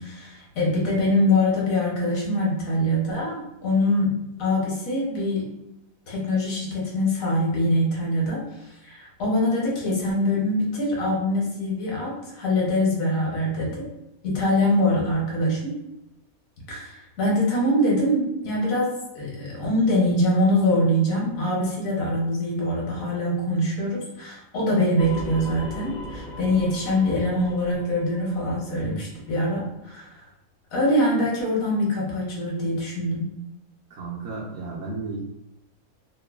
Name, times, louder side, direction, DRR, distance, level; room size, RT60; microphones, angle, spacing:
voice 1, 0.0-4.1 4.4-5.5 6.1-8.4 8.8-13.8 14.2-15.8 16.7-30.1 30.7-33.3, left 1 dB, 70° left, -3 dB, 1.3 m, -24 dB
sound 1, 25.0-29.4, left 1 dB, 55° left, 0.5 m, -38 dB
voice 2, 33.9-35.2, right 3 dB, 70° right, -5 dB, 0.9 m, -33 dB
3.1 x 2.1 x 2.2 m, 0.86 s
omnidirectional pair, 1.5 m